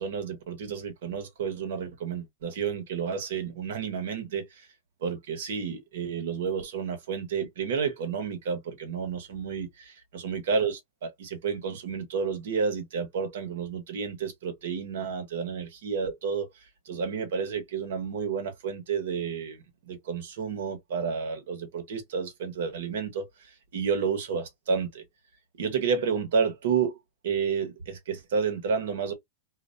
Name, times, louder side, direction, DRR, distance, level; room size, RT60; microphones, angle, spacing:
voice 1, 0.0-4.7 5.0-25.0 25.6-27.0 27.2-29.1, right 6 dB, 75° right, 1.0 m, -31 dB
2.4 x 2.1 x 2.4 m
hypercardioid pair, 130°, 0 cm